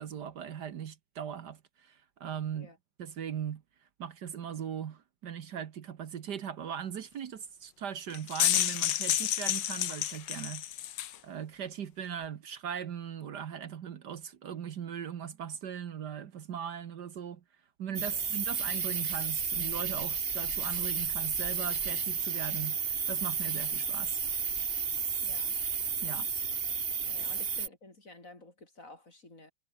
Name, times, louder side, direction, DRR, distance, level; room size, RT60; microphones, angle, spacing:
voice 1, 0.0-2.7 3.0-3.6 4.0-10.6 11.2-17.4 17.8-24.2 26.0-26.3 27.2-27.3, right 8 dB, 65° right, 1.7 m, -39 dB
sound 1, 8.1-11.2, left 12 dB, 70° left, 1.6 m, -30 dB
sound 2, 17.9-27.7, right 6 dB, 35° right, 1.3 m, -32 dB
voice 2, 25.2-25.5 27.1-29.5, left 2 dB, 45° left, 5.7 m, -52 dB
omnidirectional pair, 2.0 m